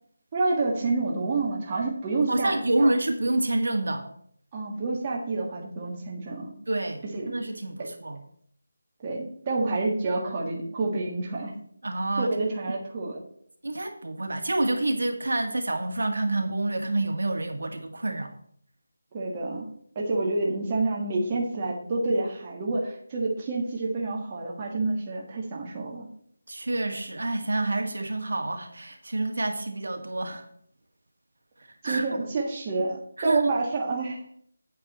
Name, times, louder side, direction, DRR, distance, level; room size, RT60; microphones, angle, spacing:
voice 1, 0.3-2.9 4.5-6.5 7.1-7.4 7.8-7.9 9.0-11.5 12.2-13.2 19.1-19.7 20.0-26.1 31.8-34.3, right 3 dB, 20° right, -2 dB, 1.7 m, -28 dB
voice 2, 2.3-4.1 6.7-8.2 11.8-12.3 13.6-18.3 26.5-30.5 31.8-32.1 33.2-33.5, right 2 dB, 70° right, 5 dB, 1.7 m, -28 dB
8.7 x 8.6 x 4.2 m, 0.63 s
figure-of-eight pair, 170°, 0 cm